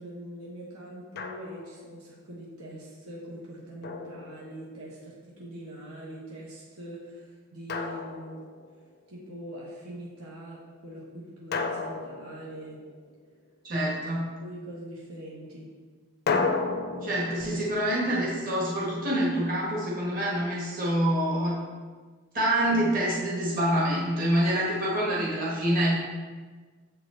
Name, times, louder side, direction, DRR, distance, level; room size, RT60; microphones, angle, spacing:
voice 1, 0.0-8.5 9.1-12.8 14.4-15.7, right 1 dB, 80° right, -5 dB, 1.3 m, -42 dB
Drum, 1.2-1.8 3.8-4.9 7.7-8.9 11.5-13.2 16.3-19.2, left 4 dB, 45° left, 0.4 m, -33 dB
voice 2, 13.6-14.3 17.0-21.6 22.3-25.9, right 1 dB, 40° right, -6 dB, 1.4 m, -26 dB
7.1 x 4.7 x 3.8 m, 1.4 s
head